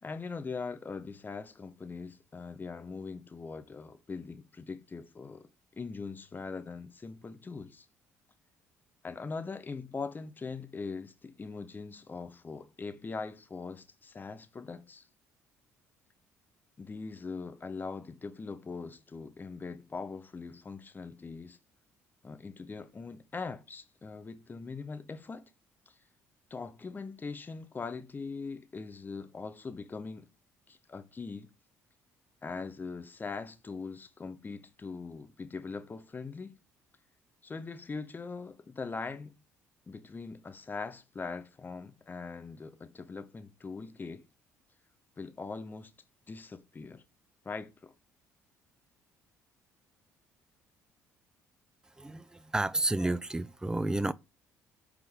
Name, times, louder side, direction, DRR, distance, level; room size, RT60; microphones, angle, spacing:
voice 1, 0.0-5.5 5.7-7.9 9.0-15.1 16.8-21.6 22.2-25.4 25.9-26.0 26.5-30.3 30.7-31.5 32.4-36.6 37.4-39.4 39.9-44.3 45.2-45.9 46.3-47.0 47.4-47.9, left 4 dB, 25° left, 0.9 m, -41 dB
voice 2, 52.0-54.1, right 2 dB, 10° right, 0.4 m, -31 dB
8.0 x 3.7 x 3.7 m
figure-of-eight pair, 50°, 8 cm